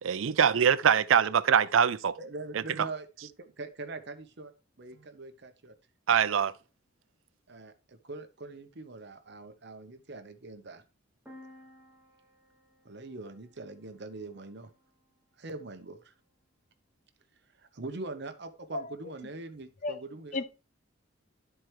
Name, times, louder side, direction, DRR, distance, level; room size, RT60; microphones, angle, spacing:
voice 1, 0.0-2.2 2.5-2.6 6.1-6.5, right 7 dB, 80° right, 0.5 m, -23 dB
voice 2, 2.2-3.1 3.4-4.5 4.8-5.7 7.5-10.8 12.8-14.7 15.4-16.1 17.7-20.4, right 3 dB, 60° right, 0.9 m, -42 dB
sound 1, 11.3-15.0, left 1 dB, 5° right, 1.5 m, -56 dB
voice 3, 18.7-19.1 19.8-20.0 20.3-20.4, left 3 dB, 40° left, 0.6 m, -34 dB
12.5 x 4.5 x 3.2 m
head